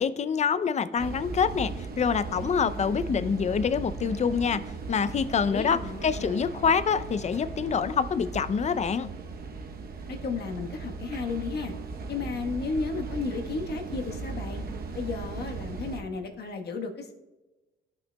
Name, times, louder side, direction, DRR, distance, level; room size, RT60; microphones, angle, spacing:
voice 1, 0.0-4.6 4.9-9.1, left 6 dB, 35° left, 13 dB, 0.5 m, -26 dB
sound 1, 1.0-16.0, right 4 dB, 50° right, 0.9 m, -37 dB
voice 2, 5.4-6.3 10.1-11.7 12.1-14.6 14.9-17.1, left 4 dB, 55° left, 3 dB, 1.3 m, -33 dB
13.5 x 5.8 x 2.2 m, 1.1 s
cardioid pair, 90°, 20 cm